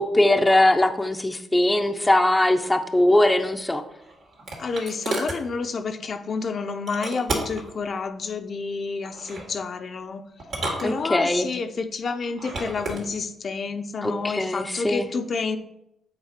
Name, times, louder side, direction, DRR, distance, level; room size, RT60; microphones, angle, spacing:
voice 1, 0.0-3.8 10.8-11.5 14.0-15.1, left 1 dB, 15° left, 6 dB, 0.7 m, -21 dB
sound 1, 3.7-5.4 6.9-7.7 9.0-9.5 10.4-11.4 12.3-13.0, right 2 dB, 70° right, 2.5 m, -31 dB
voice 2, 4.6-10.2 10.8-15.6, left 4 dB, 55° left, 6 dB, 0.6 m, -29 dB
8.1 x 4.1 x 5.0 m, 0.81 s
cardioid pair, 80°, 0 cm